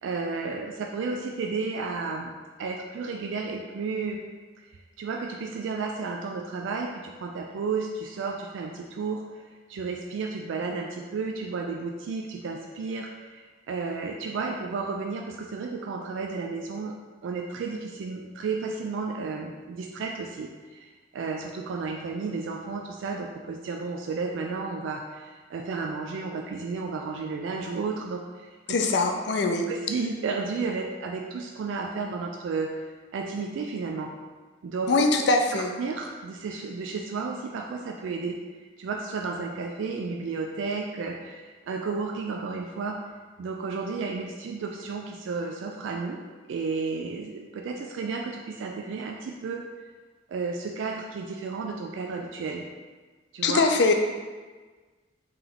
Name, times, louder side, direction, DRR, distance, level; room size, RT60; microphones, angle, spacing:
voice 1, 0.0-4.3 4.7-9.4 9.7-17.0 17.2-28.6 29.7-34.1 34.6-34.9 35.5-38.4 38.8-43.0 43.4-46.2 46.5-49.7 50.3-52.7 53.3-53.6, right 4 dB, 75° right, 1 dB, 0.3 m, -32 dB
voice 2, 28.7-29.7 34.9-35.7 53.4-53.9, left 3 dB, 60° left, 4 dB, 0.4 m, -22 dB
3.3 x 3.0 x 3.8 m, 1.4 s
head